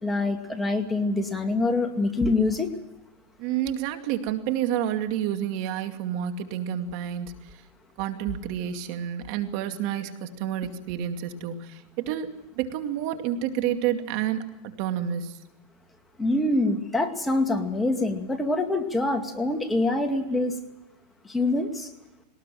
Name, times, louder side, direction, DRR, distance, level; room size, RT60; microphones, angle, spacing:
voice 1, 0.0-2.7 16.2-20.5 21.2-21.9, left 2 dB, 10° left, 4 dB, 2.3 m, -25 dB
voice 2, 3.4-7.6 8.0-15.4, right 10 dB, 55° right, 6 dB, 2.4 m, -29 dB
21.5 x 19.5 x 7.7 m, 0.93 s
supercardioid pair, 130°, 0 cm